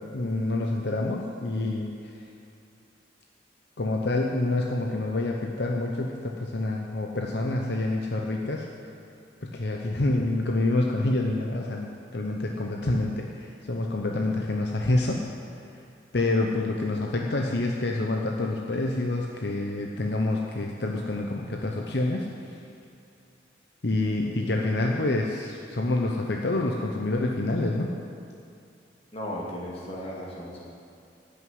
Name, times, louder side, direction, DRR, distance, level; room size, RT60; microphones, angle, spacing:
voice 1, 0.1-2.1 3.8-8.7 9.4-15.2 16.1-22.6 23.8-27.9, left 2 dB, 65° left, 0 dB, 0.9 m, -27 dB
voice 2, 29.1-30.6, equal, 30° left, -4 dB, 2.5 m, -35 dB
12.5 x 6.8 x 9.5 m, 2.5 s
head